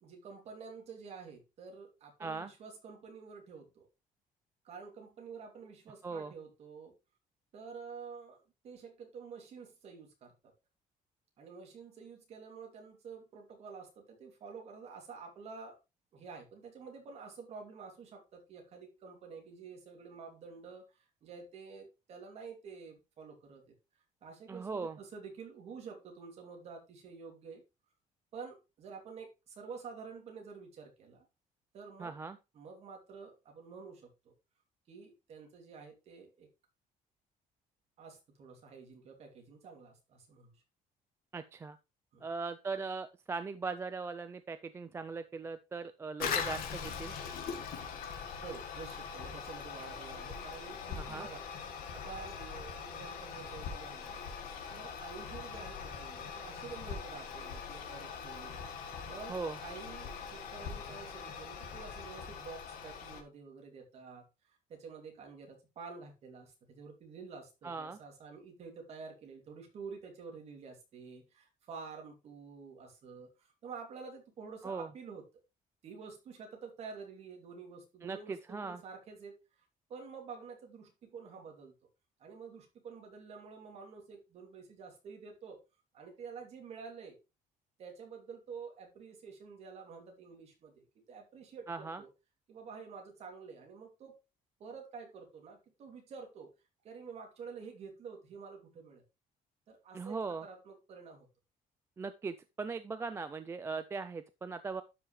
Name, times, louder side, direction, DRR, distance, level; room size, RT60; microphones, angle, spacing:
voice 1, 0.0-3.9 4.6-6.9 7.5-10.3 11.4-15.8 16.1-23.7 24.2-27.6 28.3-31.2 31.7-32.1 32.5-34.3 34.9-36.5 38.0-40.6 42.1-42.3 48.3-51.5 51.9-54.2 54.7-58.6 59.1-75.3 75.8-79.4 79.9-81.7 82.2-85.6 85.9-87.2 87.8-92.1 92.5-94.2 94.6-96.5 96.8-99.0 99.7-101.3, right 5 dB, 45° right, 2 dB, 2.8 m, -49 dB
voice 2, 2.2-2.5 6.0-6.3 24.5-25.0 32.0-32.4 41.3-41.8 42.2-47.1 51.0-51.3 59.3-59.6 67.6-68.0 74.6-74.9 78.0-78.8 91.7-92.0 99.9-100.5 102.0-104.8, right 4 dB, 15° right, 11 dB, 0.4 m, -39 dB
Toilet flush, 46.2-63.2, left 6 dB, 75° left, 1.7 m, -42 dB
11.5 x 5.7 x 3.2 m, 0.26 s
cardioid pair, 180°, 15 cm